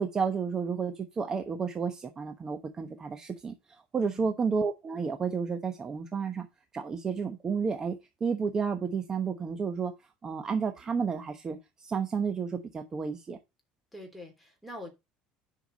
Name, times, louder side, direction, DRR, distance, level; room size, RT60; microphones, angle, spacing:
voice 1, 0.0-6.5 6.7-9.9 10.2-13.4, right 5 dB, 25° right, 1.0 m, -31 dB
voice 2, 13.9-14.9, left 1 dB, ahead, 3.2 m, -44 dB
10.5 x 5.9 x 4.0 m
cardioid pair, 140°, 3 cm